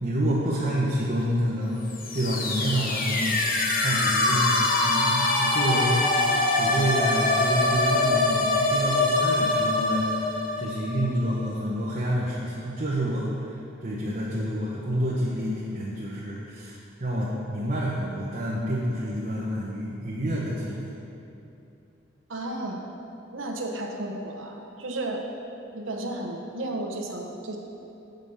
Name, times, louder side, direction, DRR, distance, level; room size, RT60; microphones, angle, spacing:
voice 1, 0.0-1.8 2.1-3.4 3.7-6.0 6.5-10.0 10.6-13.6 13.8-20.9, equal, 40° right, -6 dB, 1.0 m, -28 dB
sound 1, 1.9-11.6, left 2 dB, 45° left, 0.8 m, -24 dB
voice 2, 22.3-22.8 23.3-25.2 25.7-27.6, right 1 dB, 80° right, 2 dB, 1.0 m, -33 dB
8.0 x 5.2 x 5.5 m, 2.8 s
head